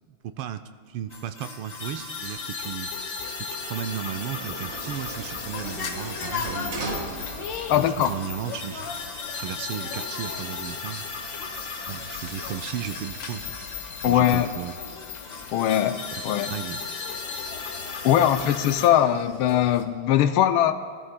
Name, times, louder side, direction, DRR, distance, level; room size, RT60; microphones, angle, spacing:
voice 1, 0.1-2.9 3.6-6.8 7.7-8.9 9.4-11.1 11.8-13.6 14.0-14.8 16.4-16.8, right 9 dB, 80° right, 9 dB, 1.4 m, -35 dB
sound 1, 1.1-18.9, left 5 dB, 45° left, 1.4 m, -36 dB
Sliding door, 3.2-8.0 8.3-9.2, right 3 dB, 50° right, 0.9 m, -39 dB
sound 2, 4.3-19.8, left 5 dB, 65° left, 1.5 m, -40 dB
voice 2, 7.7-8.1 14.0-14.5 15.5-16.5 18.0-20.7, left 11 dB, 80° left, 9 dB, 1.4 m, -21 dB
20.5 x 12.5 x 2.2 m, 2.1 s
omnidirectional pair, 2.4 m